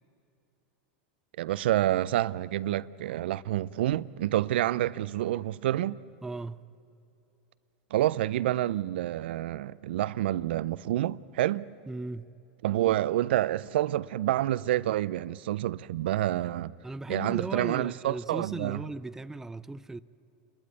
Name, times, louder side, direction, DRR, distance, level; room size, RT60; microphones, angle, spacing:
voice 1, 1.4-6.0 7.9-11.7 12.6-16.7 17.1-18.8, right 14 dB, 80° right, 0.5 m, -28 dB
voice 2, 6.2-6.7 11.9-12.3 16.8-20.0, right 2 dB, 5° right, 0.4 m, -37 dB
28.5 x 12.5 x 9.6 m
supercardioid pair, 125°, 6 cm